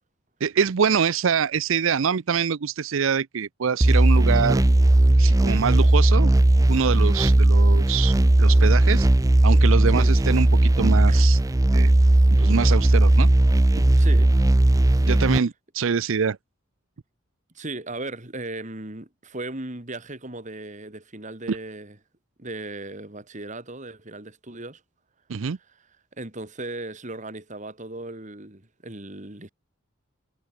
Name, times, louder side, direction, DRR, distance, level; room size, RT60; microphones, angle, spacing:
voice 1, 0.4-4.6 5.2-6.3 6.7-9.1 9.4-11.4 11.7-11.9 12.4-13.3 15.0-16.4 21.5-21.6 25.3-25.6, right 6 dB, 70° right, 0.5 m, -24 dB
sound 1, 3.8-15.4, right 1 dB, 15° right, 0.5 m, -17 dB
voice 2, 14.0-14.3 14.9-15.1 17.5-22.0 22.4-24.8 26.2-29.5, right 2 dB, 35° right, 2.7 m, -37 dB
head